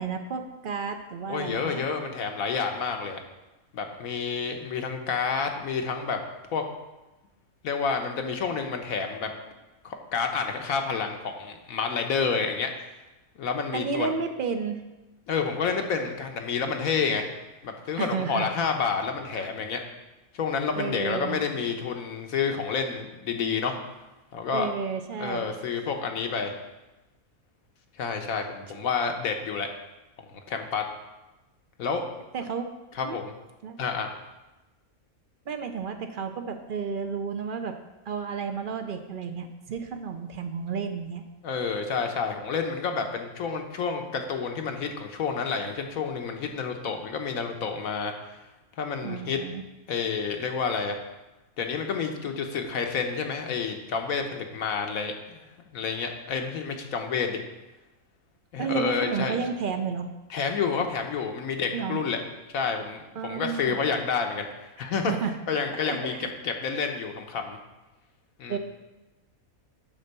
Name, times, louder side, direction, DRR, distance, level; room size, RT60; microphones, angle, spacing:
voice 1, 0.0-1.8 13.7-14.8 18.0-18.5 19.4-19.8 20.8-21.4 24.5-25.5 32.3-32.7 33.0-33.2 33.6-33.8 35.5-37.8 38.1-41.2 49.0-49.6 58.6-60.1 61.7-62.0 63.2-63.8 64.8-65.3 65.8-66.3 68.5-68.6, right 6 dB, 50° right, 7 dB, 0.6 m, -32 dB
voice 2, 1.3-3.2 3.7-6.2 6.5-6.6 7.6-9.3 9.8-12.7 13.4-14.1 15.3-17.2 17.6-19.8 20.3-23.8 24.3-24.7 25.2-26.5 28.0-29.7 30.5-30.8 31.8-32.0 32.9-33.3 33.8-34.1 41.4-48.4 48.8-49.4 49.9-51.0 51.6-55.4 55.7-57.4 58.5-59.4 60.3-62.2 62.5-65.1 65.5-67.6 68.4-68.6, left 5 dB, 80° left, 4 dB, 1.3 m, -29 dB
9.7 x 3.9 x 6.7 m, 1.1 s
omnidirectional pair, 1.5 m